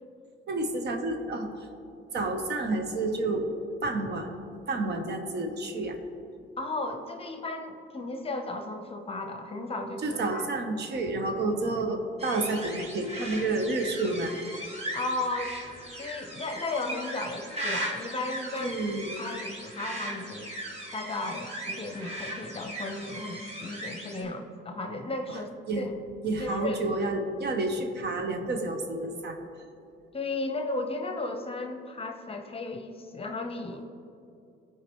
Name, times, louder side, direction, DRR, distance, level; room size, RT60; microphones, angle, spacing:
voice 1, 0.5-1.5 2.1-3.5 3.8-4.3 4.7-6.0 10.0-14.3 18.6-19.2 24.2-24.3 25.3-25.4 25.7-25.9 26.2-29.4, right 2 dB, 60° right, 5 dB, 1.0 m, -30 dB
voice 2, 6.6-10.4 14.9-15.5 16.0-18.8 19.2-20.5 20.9-25.9 26.4-26.8 30.1-33.9, left 2 dB, 30° left, 5 dB, 0.8 m, -35 dB
sound 1, 12.2-24.2, right 1 dB, 30° right, 1.9 m, -38 dB
14.0 x 4.9 x 3.1 m, 2.6 s
cardioid pair, 90°, 20 cm